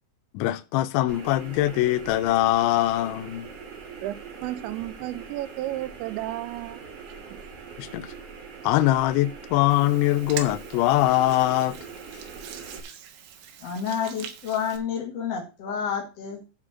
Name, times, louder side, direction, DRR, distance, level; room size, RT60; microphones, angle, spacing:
voice 1, 0.3-3.5 7.8-8.1 8.6-11.8, left 15 dB, 80° left, 2.8 m, -22 dB
sound 1, 1.1-12.8, right 5 dB, 55° right, 1.7 m, -42 dB
voice 2, 4.4-6.8 7.1-7.4, right 15 dB, 90° right, 2.6 m, -33 dB
Hands, 9.7-14.8, right 9 dB, 70° right, 3.3 m, -42 dB
voice 3, 13.6-16.4, left 7 dB, 55° left, 1.7 m, -29 dB
9.7 x 4.5 x 7.2 m
omnidirectional pair, 5.9 m